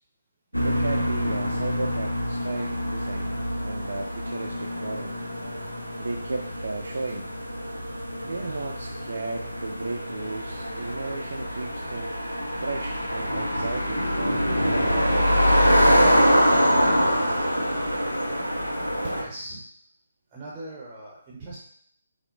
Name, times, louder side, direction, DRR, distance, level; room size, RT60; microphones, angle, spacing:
sound 1, 0.5-19.2, equal, 85° left, 0.5 m, -25 dB
voice 1, 0.5-5.1 6.0-7.3 8.2-12.2 12.6-15.5, right 3 dB, 60° right, 0 dB, 0.3 m, -35 dB
voice 2, 19.1-19.6 20.3-21.6, right 1 dB, 25° right, -4 dB, 0.6 m, -40 dB
5.5 x 2.1 x 2.4 m, 0.66 s
figure-of-eight pair, 140°, 0 cm